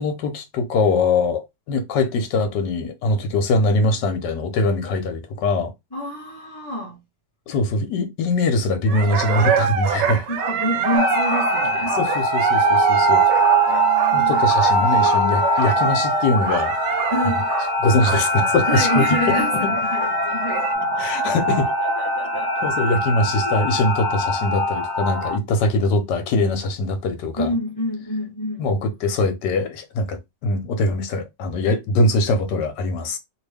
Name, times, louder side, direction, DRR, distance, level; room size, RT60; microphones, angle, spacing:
voice 1, 0.0-5.7 7.5-10.3 11.9-13.2 14.1-17.0 17.8-19.0 19.6-19.7 21.0-21.7 22.6-27.5 28.6-33.2, left 2 dB, 75° left, 1.4 m, -22 dB
voice 2, 5.9-7.0 10.3-12.0 13.7-14.4 17.1-17.5 18.7-21.0 21.8-22.9 23.4-23.6 27.4-28.7, equal, 15° left, 0.9 m, -28 dB
sound 1, 8.9-20.7, right 6 dB, 85° right, 1.2 m, -26 dB
sound 2, 11.0-25.4, right 1 dB, 20° right, 0.7 m, -21 dB
2.9 x 2.8 x 3.3 m
omnidirectional pair, 1.9 m